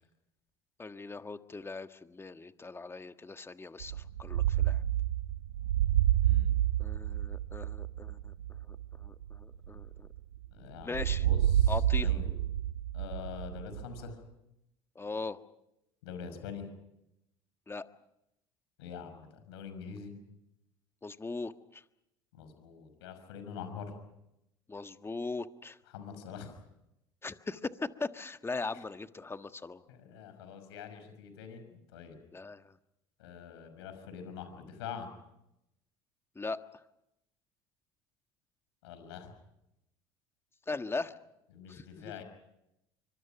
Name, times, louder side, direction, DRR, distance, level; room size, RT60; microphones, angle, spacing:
voice 1, 0.8-4.8 6.8-8.3 9.0-10.1 10.8-11.2 11.7-12.1 14.9-15.4 17.7-17.8 21.0-21.8 24.7-25.8 27.2-27.7 28.0-29.8 32.3-32.7 36.3-36.6 40.7-41.1 41.7-42.1, left 3 dB, 15° left, 9 dB, 1.5 m, -39 dB
sound 1, 3.8-10.5 10.9-14.1, right 12 dB, 85° right, 1.3 m, -29 dB
voice 2, 6.2-6.5 10.5-12.3 12.9-14.2 16.0-16.7 18.8-20.1 22.3-23.9 25.9-26.6 28.7-28.8 29.9-32.2 33.2-35.1 38.8-39.3 41.5-42.2, left 7 dB, 75° left, 8 dB, 5.7 m, -45 dB
27.0 x 25.0 x 6.0 m, 0.86 s
hypercardioid pair, 70°, 14 cm